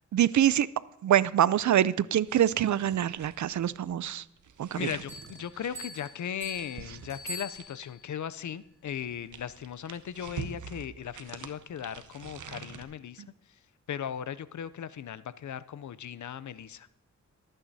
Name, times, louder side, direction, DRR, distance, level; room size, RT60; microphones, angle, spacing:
voice 1, 0.1-0.7 1.0-4.2 4.6-4.9, right 11 dB, 75° right, 18 dB, 0.4 m, -25 dB
sound 1, 2.2-8.0 8.9-12.8, right 6 dB, 90° right, 0.8 m, -46 dB
voice 2, 4.7-13.2 13.9-16.9, left 9 dB, 75° left, 16 dB, 0.5 m, -37 dB
Bell, 5.1-8.1, equal, 20° left, 5.5 m, -44 dB
24.0 x 9.0 x 2.7 m, 0.76 s
wide cardioid pair, 70°, 30 cm